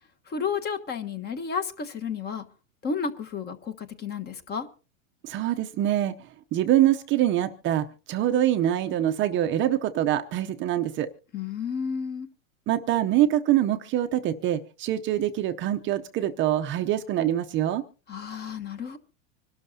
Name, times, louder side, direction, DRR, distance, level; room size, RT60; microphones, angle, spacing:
voice 1, 0.3-2.4 2.8-4.7 11.3-12.3 18.1-19.0, left 6 dB, 25° left, 11 dB, 1.3 m, -32 dB
voice 2, 5.2-6.1 6.5-11.1 12.7-17.8, right 12 dB, 30° right, 8 dB, 0.7 m, -24 dB
25.5 x 12.5 x 2.8 m, 0.35 s
supercardioid pair, 135°, 40 cm